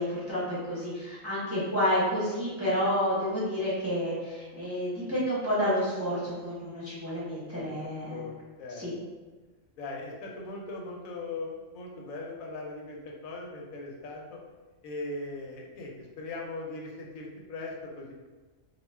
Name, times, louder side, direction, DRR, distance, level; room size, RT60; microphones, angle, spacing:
voice 1, 0.0-8.2 8.8-8.9, equal, 20° right, -9 dB, 0.4 m, -30 dB
voice 2, 7.5-8.8 9.8-14.4 14.8-18.1, left 2 dB, 90° left, -1 dB, 1.0 m, -39 dB
2.3 x 2.3 x 3.2 m, 1.3 s
omnidirectional pair, 1.4 m